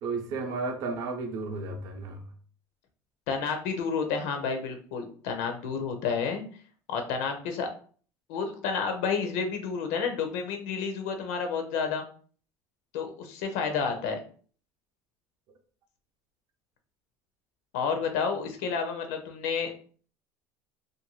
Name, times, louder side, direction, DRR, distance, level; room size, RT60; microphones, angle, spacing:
voice 1, 0.0-2.2, right 3 dB, 50° right, 0.5 m, -33 dB
voice 2, 3.3-6.4 6.9-7.7 8.3-12.0 12.9-14.2 17.7-19.7, left 5 dB, 85° left, 0.6 m, -30 dB
2.5 x 2.2 x 2.9 m
cardioid pair, 155°, 8 cm